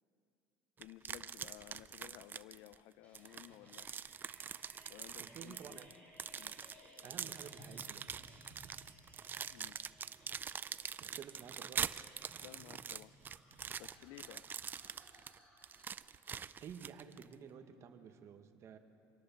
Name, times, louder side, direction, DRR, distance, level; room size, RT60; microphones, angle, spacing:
voice 1, 0.8-3.9 4.9-5.8 6.4-6.5 9.5-9.8 12.4-13.1 13.8-14.5, left 15 dB, 75° left, 16 dB, 0.6 m, -55 dB
sound 1, 0.8-2.8 3.1-17.3, right 7 dB, 30° right, 0.4 m, -44 dB
sound 2, 3.0-15.9, equal, 15° left, 5.5 m, -61 dB
voice 2, 5.2-5.9 7.0-8.3 11.0-11.9 16.6-18.8, right 7 dB, 45° right, 6 dB, 1.6 m, -52 dB
25.5 x 18.0 x 7.2 m, 2.8 s
cardioid pair, 135°, 7 cm